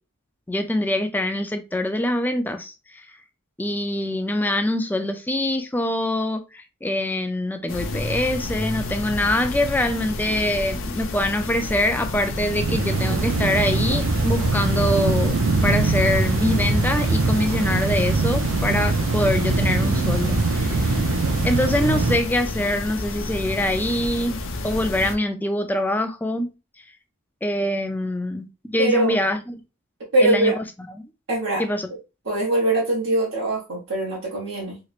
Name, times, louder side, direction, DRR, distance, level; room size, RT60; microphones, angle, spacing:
voice 1, 0.5-3.1 3.6-21.0 21.4-24.4 24.6-26.5 27.4-29.5 30.2-30.6 31.6-31.9, left 1 dB, 10° left, 0.4 m, -24 dB
sound 1, 7.7-25.2, left 2 dB, 65° left, 0.5 m, -31 dB
sound 2, 12.3-22.2, right 3 dB, 80° right, 0.5 m, -22 dB
voice 2, 28.8-29.1 30.1-30.6 31.3-31.6 32.3-34.8, right 2 dB, 60° right, 1.0 m, -22 dB
3.0 x 2.9 x 2.4 m
head